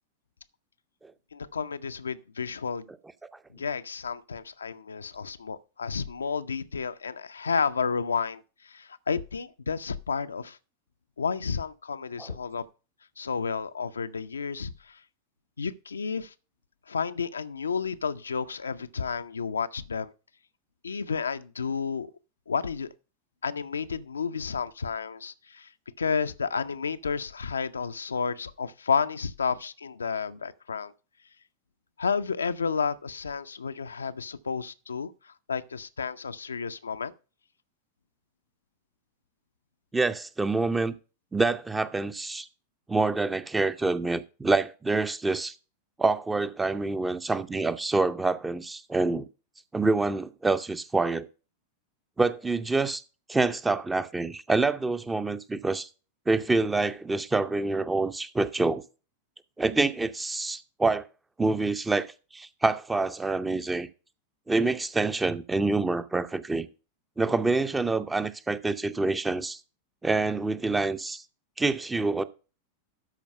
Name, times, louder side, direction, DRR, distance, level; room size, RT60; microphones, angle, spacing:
voice 1, 1.3-2.9 3.5-10.6 11.2-12.6 13.2-15.0 15.6-16.3 16.9-20.1 20.8-22.1 22.5-22.9 23.4-25.7 26.0-30.9 32.0-37.1, left 5 dB, 75° left, 0.5 m, -31 dB
voice 2, 39.9-40.9 41.3-42.5 42.9-45.5 46.0-49.3 49.7-51.3 52.2-53.0 53.3-55.9 56.3-58.8 59.6-61.0 61.4-62.1 62.3-63.9 64.5-66.7 67.2-69.6 70.0-71.2 71.6-72.2, right 3 dB, 10° right, 0.6 m, -26 dB
12.5 x 4.6 x 5.4 m
figure-of-eight pair, 90°, 0 cm